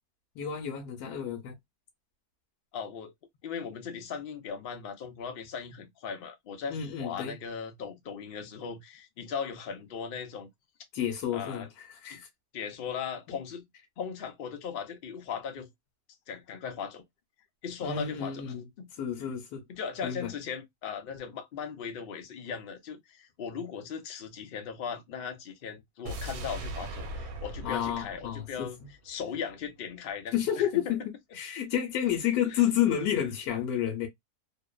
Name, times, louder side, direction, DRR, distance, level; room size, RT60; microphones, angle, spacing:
voice 1, 0.4-1.5 6.7-7.4 10.9-12.3 17.8-18.6 19.0-19.6 20.0-20.3 27.6-28.7 30.3-34.1, left 10 dB, 80° left, 1.1 m, -30 dB
voice 2, 2.7-3.1 3.4-10.5 11.3-11.7 12.1-12.2 12.5-13.6 14.0-15.7 16.3-17.0 17.6-18.9 19.7-31.0 32.5-32.6, left 6 dB, 50° left, 0.7 m, -38 dB
sound 1, 26.1-29.2 29.5-29.6, right 1 dB, 75° right, 1.2 m, -40 dB
2.9 x 2.0 x 2.3 m
omnidirectional pair, 1.6 m